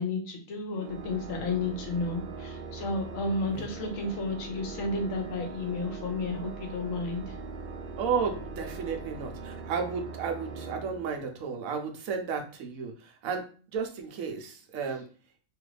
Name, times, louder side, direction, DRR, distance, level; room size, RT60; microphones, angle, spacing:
voice 1, 0.0-7.4, left 3 dB, 75° left, 4 dB, 1.1 m, -32 dB
Organ, 0.8-11.7, right 3 dB, 65° right, 0.7 m, -41 dB
voice 2, 8.0-13.4 13.7-15.0, right 6 dB, 85° right, 4 dB, 1.1 m, -33 dB
3.1 x 2.4 x 3.2 m, 0.39 s
omnidirectional pair, 1.4 m